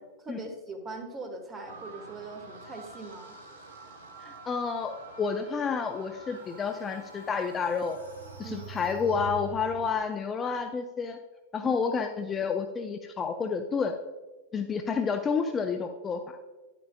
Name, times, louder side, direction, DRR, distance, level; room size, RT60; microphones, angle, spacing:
voice 1, 0.2-3.4 8.4-8.7 11.6-11.7, right 3 dB, 20° right, 5 dB, 1.4 m, -41 dB
sound 1, 1.7-9.8, right 2 dB, 65° right, 1.0 m, -48 dB
voice 2, 4.2-8.0 8.4-11.2 11.5-13.9 14.5-16.4, left 5 dB, 20° left, 7 dB, 0.5 m, -30 dB
sound 2, 6.7-9.9, right 5 dB, 85° left, 3.0 m, -44 dB
10.5 x 8.9 x 2.2 m, 1.2 s
figure-of-eight pair, 90°, 0 cm